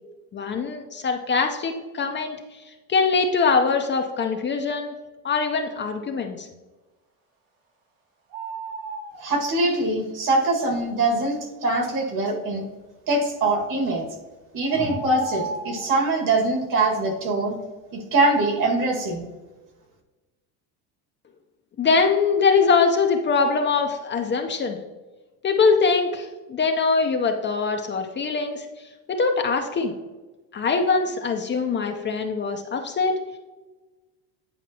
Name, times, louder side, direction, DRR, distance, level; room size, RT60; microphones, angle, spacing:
voice 1, 0.3-2.3 2.9-4.9 5.2-6.5 21.8-24.8 25.4-28.7 29.2-29.9 30.5-33.2, left 4 dB, 30° left, 4 dB, 0.6 m, -22 dB
sound 1, 8.3-9.2 13.8-14.0 14.7-15.9, right 4 dB, 85° right, 2.3 m, -34 dB
voice 2, 9.2-12.6 13.1-14.1 14.5-17.5 17.9-19.3, right 2 dB, 50° right, 2 dB, 1.8 m, -23 dB
9.3 x 5.0 x 2.8 m, 1.2 s
cardioid pair, 120°, 39 cm